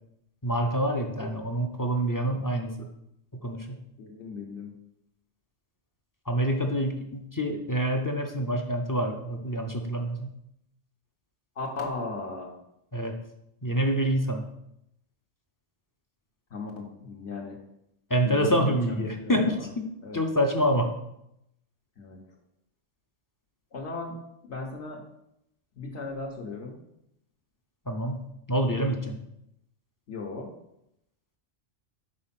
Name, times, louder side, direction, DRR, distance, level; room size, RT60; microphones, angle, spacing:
voice 1, 0.4-2.9 3.4-3.8 6.3-10.3 12.9-13.2 13.6-14.5 18.1-20.9 27.9-29.2, equal, 30° left, 4 dB, 0.4 m, -27 dB
voice 2, 4.0-4.7 11.6-12.5 16.5-17.5 18.3-19.3 20.0-20.2 22.0-22.2 23.7-24.1 24.5-25.0 25.8-26.7 30.1-30.5, left 3 dB, 65° left, 0 dB, 1.2 m, -36 dB
5.0 x 4.3 x 5.7 m, 0.80 s
omnidirectional pair, 1.2 m